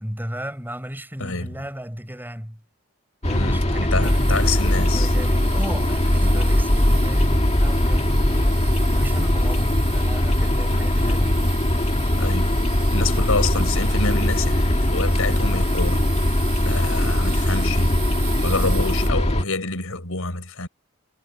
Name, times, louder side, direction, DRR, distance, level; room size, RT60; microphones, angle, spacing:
voice 1, 0.0-2.6 3.2-11.4, equal, 10° right, 6.3 m, -35 dB
voice 2, 1.2-1.7 3.3-5.1 12.2-12.6 12.9-16.1 16.6-20.7, left 3 dB, 70° left, 5.3 m, -28 dB
sound 1, 3.2-19.4, left 1 dB, 30° left, 2.1 m, -20 dB
sound 2, 4.0-19.1, right 12 dB, 85° right, 7.7 m, -38 dB
head